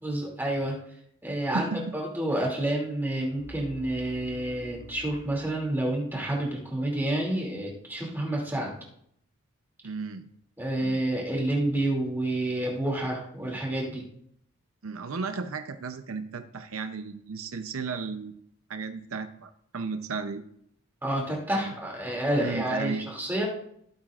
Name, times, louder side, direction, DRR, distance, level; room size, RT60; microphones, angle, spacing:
voice 1, 0.0-0.8 1.2-8.8 10.6-14.0 21.0-23.5, right 1 dB, 10° right, -3 dB, 2.6 m, -29 dB
sound 1, 3.4-6.9 7.1-7.5, right 1 dB, 35° right, 3.2 m, -48 dB
voice 2, 9.8-10.2 10.8-11.0 14.8-18.3 18.7-20.4 21.6-21.7 22.4-23.1, right 4 dB, 80° right, 8 dB, 0.6 m, -34 dB
16.0 x 8.8 x 2.5 m, 0.71 s
head